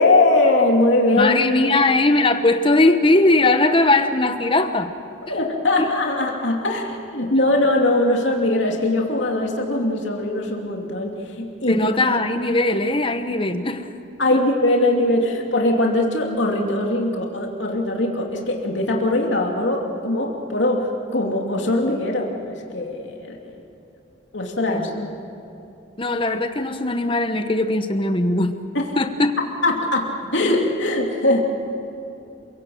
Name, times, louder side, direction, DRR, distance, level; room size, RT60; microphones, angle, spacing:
voice 1, 0.0-1.8 5.3-11.9 14.2-23.6 24.3-24.9 28.7-28.9 29.6-31.4, left 2 dB, 70° left, 0 dB, 2.8 m, -21 dB
voice 2, 1.1-4.9 5.8-5.9 11.7-13.9 14.3-14.4 24.7-25.1 26.0-28.6 29.0-29.3, left 2 dB, 25° left, 8 dB, 1.1 m, -19 dB
27.5 x 17.5 x 7.8 m, 2.8 s
head